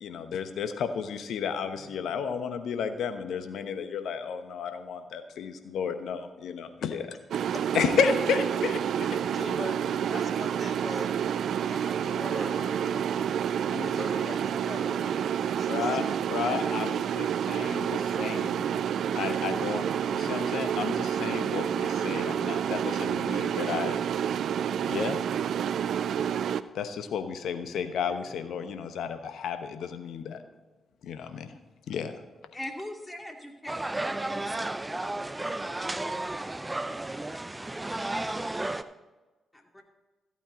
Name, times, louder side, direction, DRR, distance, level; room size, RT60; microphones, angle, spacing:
voice 1, 0.0-7.1 7.7-9.1 15.6-18.8 19.1-24.0 24.9-25.2 26.7-30.4 31.0-31.5 31.9-32.1, left 6 dB, 70° left, 9 dB, 1.0 m, -32 dB
sound 1, 7.3-26.6, right 8 dB, 65° right, 0.4 m, -29 dB
voice 2, 9.3-9.8 10.1-13.1 13.7-15.2 15.4-16.7 28.1-28.2 30.4-30.5, left 3 dB, 45° left, 4 dB, 2.0 m, -42 dB
voice 3, 32.5-34.3 39.5-39.8, left 1 dB, 15° left, 2 dB, 2.5 m, -41 dB
sound 2, 33.7-38.8, right 2 dB, 20° right, 0.7 m, -33 dB
14.0 x 8.8 x 3.8 m, 1.2 s
hypercardioid pair, 40°, 0 cm